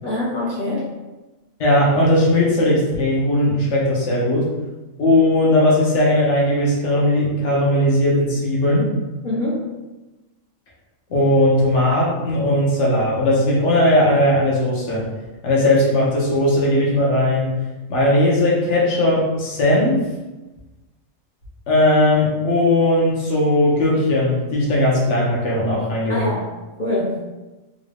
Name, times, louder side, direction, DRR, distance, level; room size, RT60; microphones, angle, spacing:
voice 1, 0.0-0.9 9.2-9.7 26.1-26.4 26.8-27.2, left 1 dB, 45° left, -7 dB, 0.7 m, -24 dB
voice 2, 1.6-4.5 5.0-8.9 11.1-15.1 15.4-17.5 17.9-20.1 21.7-26.3, left 1 dB, 60° left, -5 dB, 1.1 m, -18 dB
3.1 x 2.6 x 3.2 m, 1.1 s
omnidirectional pair, 1.4 m